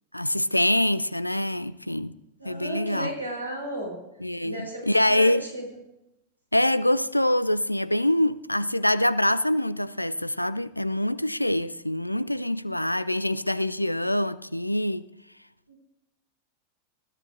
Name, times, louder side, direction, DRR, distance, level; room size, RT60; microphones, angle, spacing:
voice 1, 0.1-2.2 2.4-3.1 4.2-5.4 6.5-15.1, left 1 dB, 85° left, 0.3 m, -25 dB
voice 2, 2.4-4.0 4.4-5.7 15.7-15.8, right 1 dB, 90° right, 3.9 m, -34 dB
20.0 x 13.0 x 2.7 m
figure-of-eight pair, 90°, 0 cm